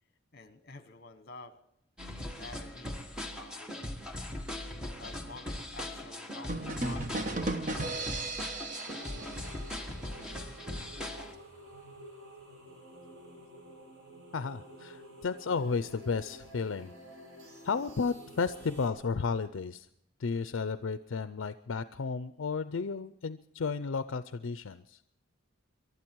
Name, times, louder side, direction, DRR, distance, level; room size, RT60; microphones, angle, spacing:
voice 1, 0.3-1.5 2.4-3.1 3.4-4.0 5.0-8.5, left 3 dB, 50° left, 10 dB, 1.4 m, -50 dB
sound 1, 2.0-11.3, left 1 dB, 5° right, 1.4 m, -40 dB
sound 2, 6.5-10.2, right 2 dB, 40° right, 1.0 m, -36 dB
sound 3, 8.8-18.9, equal, 80° right, 5.2 m, -51 dB
voice 2, 14.3-16.9 17.6-19.9 20.2-25.0, left 5 dB, 70° left, 12 dB, 0.5 m, -33 dB
23.5 x 12.0 x 4.6 m, 0.73 s
head